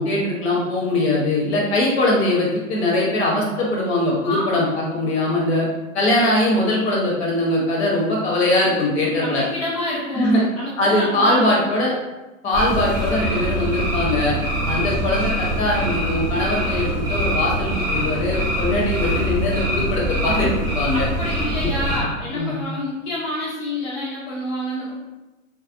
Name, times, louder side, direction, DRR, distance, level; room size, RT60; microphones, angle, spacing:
voice 1, 0.0-5.7 5.9-9.4 10.1-10.4 10.8-11.9 12.4-14.4 14.7-21.1 22.3-22.6, left 1 dB, 50° left, -3 dB, 1.0 m, -21 dB
voice 2, 4.2-4.7 9.0-11.7 20.9-24.9, left 1 dB, 15° left, -9 dB, 0.4 m, -28 dB
sound 1, 12.5-22.0, equal, 10° right, 0.8 m, -24 dB
2.4 x 2.3 x 2.5 m, 1.1 s
hypercardioid pair, 135°, 41 cm